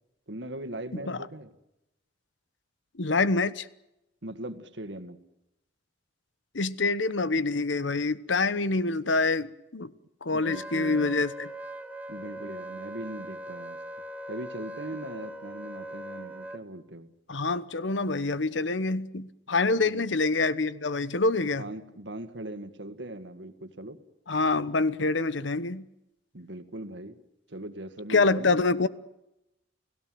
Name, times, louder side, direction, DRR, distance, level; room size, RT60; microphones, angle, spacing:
voice 1, 0.3-1.5 4.2-5.2 10.3-11.2 12.1-13.8 14.3-17.1 19.7-20.0 21.4-24.0 26.3-27.2 27.5-28.6, right 1 dB, 70° right, 2.0 m, -40 dB
voice 2, 3.0-3.7 6.5-9.9 10.2-11.5 17.3-21.6 24.3-25.8 28.1-28.9, left 3 dB, 80° left, 1.1 m, -26 dB
Wind instrument woodwind instrument, 10.4-16.6, right 1 dB, 10° right, 1.6 m, -40 dB
30.0 x 17.5 x 7.8 m
head